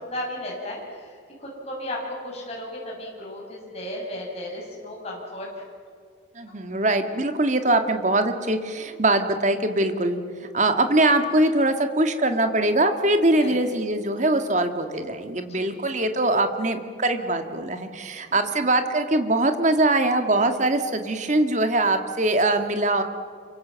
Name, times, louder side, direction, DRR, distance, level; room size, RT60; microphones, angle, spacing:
voice 1, 0.1-5.6 13.4-13.6 15.5-15.8, left 1 dB, 30° left, -3 dB, 6.6 m, -35 dB
voice 2, 6.4-23.0, right 2 dB, 40° right, 7 dB, 1.9 m, -22 dB
27.5 x 24.0 x 7.6 m, 2.1 s
head